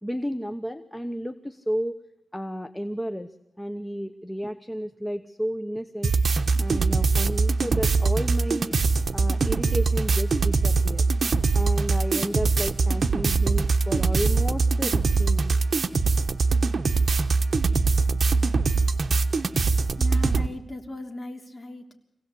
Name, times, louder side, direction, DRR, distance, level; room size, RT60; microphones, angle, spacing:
voice 1, 0.0-2.0 2.3-6.1 6.5-8.8 9.1-11.1 11.5-15.6, equal, 5° left, 9 dB, 0.9 m, -32 dB
sound 1, 6.0-20.5, right 4 dB, 55° right, 1.2 m, -22 dB
voice 2, 20.0-22.0, left 1 dB, 25° left, 2 dB, 3.3 m, -37 dB
25.5 x 17.0 x 8.4 m, 0.82 s
wide cardioid pair, 130°, 0 cm